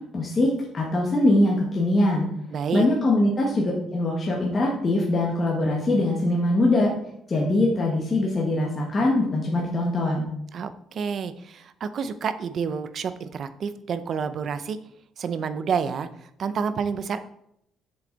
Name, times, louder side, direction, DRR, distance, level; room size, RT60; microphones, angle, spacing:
voice 1, 0.1-2.3 2.7-6.9 7.3-10.3, left 1 dB, 25° left, -3 dB, 1.6 m, -22 dB
voice 2, 2.5-2.9 10.5-14.8 15.2-16.1 16.4-17.2, right 6 dB, 45° right, 12 dB, 0.6 m, -29 dB
8.0 x 7.0 x 4.0 m, 0.74 s
cardioid pair, 155°, 0 cm